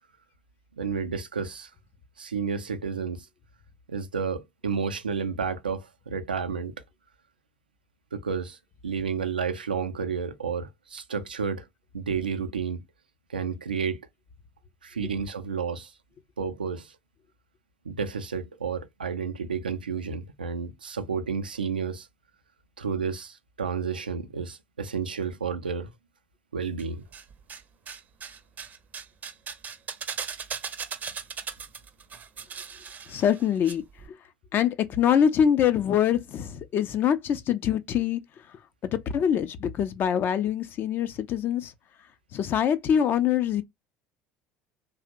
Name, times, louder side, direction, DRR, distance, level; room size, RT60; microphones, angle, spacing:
voice 1, 0.8-1.7 2.2-3.3 3.9-6.7 8.1-8.6 8.8-11.7 11.9-12.8 13.3-14.0 14.8-15.9 16.4-17.0 17.8-22.1 22.8-25.9 26.5-27.0, right 6 dB, 90° right, 0.4 m, -31 dB
sound 1, 26.8-27.6 27.9-33.7 34.0-34.1, right 6 dB, 35° right, 0.5 m, -38 dB
voice 2, 33.1-33.8 34.1-34.2 34.5-38.2 38.9-41.7 42.3-43.6, left 9 dB, 45° left, 0.4 m, -24 dB
2.8 x 2.0 x 2.5 m
hypercardioid pair, 65°, 5 cm